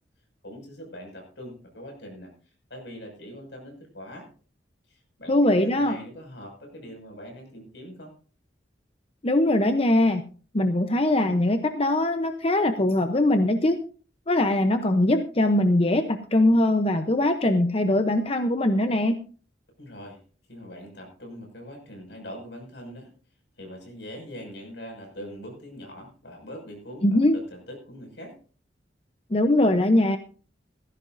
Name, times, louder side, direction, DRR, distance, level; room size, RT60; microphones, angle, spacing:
voice 1, 0.4-2.3 2.7-4.3 4.9-8.1 19.8-20.2 20.5-23.1 23.6-28.4, equal, 80° left, 3 dB, 6.1 m, -42 dB
voice 2, 5.3-6.0 9.2-10.2 10.5-13.8 14.3-19.1 27.0-27.4 29.3-30.2, left 1 dB, 35° left, 7 dB, 0.8 m, -21 dB
18.0 x 15.0 x 2.6 m, 0.39 s
head